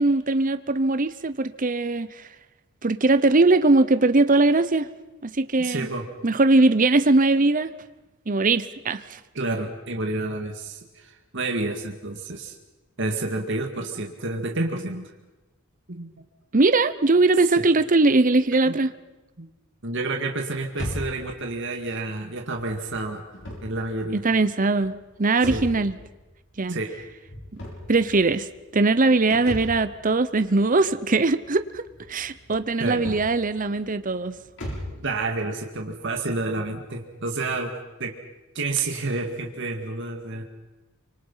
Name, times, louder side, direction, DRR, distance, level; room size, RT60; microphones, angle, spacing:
voice 1, 0.0-2.1 2.8-4.9 5.2-5.9 6.2-7.7 8.3-9.0 16.5-18.9 24.1-25.9 26.6-26.7 27.9-28.5 28.7-34.3, right 3 dB, 40° right, 12 dB, 0.8 m, -20 dB
voice 2, 5.6-6.1 9.3-12.6 13.0-15.1 15.9-16.1 17.6-17.7 18.7-18.8 19.4-19.5 19.8-24.2 25.4-25.6 26.7-26.9 32.8-33.2 35.0-37.7 38.0-38.1 38.5-40.4, right 2 dB, 60° right, 3 dB, 2.2 m, -29 dB
sound 1, 20.7-35.1, equal, 60° left, 7.2 m, -39 dB
26.0 x 25.0 x 5.7 m, 1.1 s
head